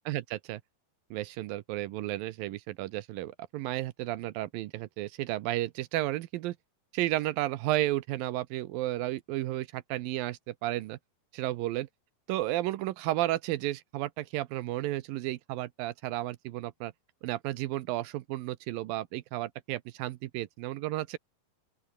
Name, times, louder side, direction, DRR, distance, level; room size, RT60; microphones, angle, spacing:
voice 1, 0.1-0.6 1.1-6.6 6.9-11.0 11.3-11.9 12.3-16.9 17.2-21.2, right 16 dB, 75° right, 2.2 m, -33 dB
open air
omnidirectional pair, 4.9 m